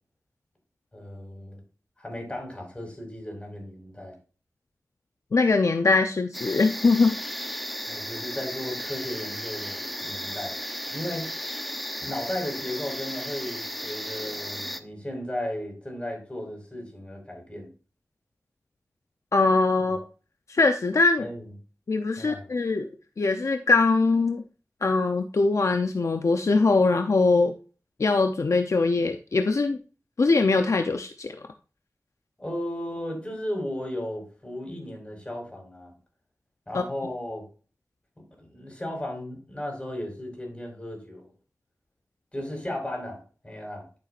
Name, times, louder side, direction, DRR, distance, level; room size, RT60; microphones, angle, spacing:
voice 1, 0.9-1.6 2.0-4.1 7.9-10.6 10.9-11.3 12.0-17.7 19.8-20.0 21.2-21.5 22.2-22.5 32.4-35.9 36.7-37.4 38.4-41.3 42.3-43.9, left 1 dB, 20° left, 1 dB, 5.1 m, -35 dB
voice 2, 5.3-7.1 19.3-20.0 20.5-21.3 21.9-22.9 23.2-24.4 24.8-27.5 28.0-29.8 30.2-31.4 36.7-36.8, left 3 dB, 65° left, 6 dB, 0.6 m, -22 dB
sound 1, 6.3-14.8, equal, ahead, 0.7 m, -35 dB
11.5 x 7.1 x 2.5 m, 0.36 s
wide cardioid pair, 70°, 5 cm